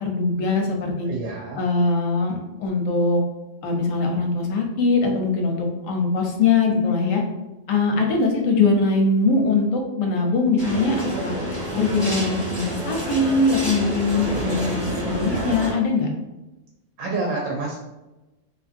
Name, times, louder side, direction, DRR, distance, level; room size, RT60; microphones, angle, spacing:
voice 1, 0.0-1.1 1.5-3.2 3.6-7.2 7.7-11.3 11.7-16.1, left 3 dB, 90° left, 2 dB, 1.0 m, -22 dB
voice 2, 1.1-1.6 17.0-17.7, right 3 dB, 85° right, -1 dB, 1.0 m, -27 dB
sound 1, 10.6-15.7, right 1 dB, 25° right, 0.9 m, -28 dB
2.9 x 2.5 x 2.4 m, 1.0 s
omnidirectional pair, 1.3 m